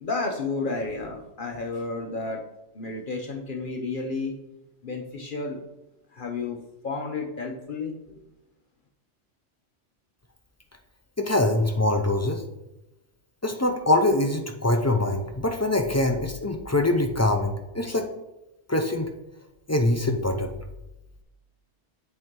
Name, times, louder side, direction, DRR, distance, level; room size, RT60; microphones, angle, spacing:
voice 1, 0.0-2.4 2.7-4.3 4.8-5.6 6.1-6.6 6.8-7.9, left 3 dB, 50° left, 2 dB, 0.9 m, -31 dB
voice 2, 11.2-12.4 13.4-18.1 18.7-19.1 19.7-20.6, left 2 dB, 20° left, 3 dB, 0.4 m, -24 dB
8.1 x 4.6 x 3.7 m, 0.95 s
omnidirectional pair, 1.2 m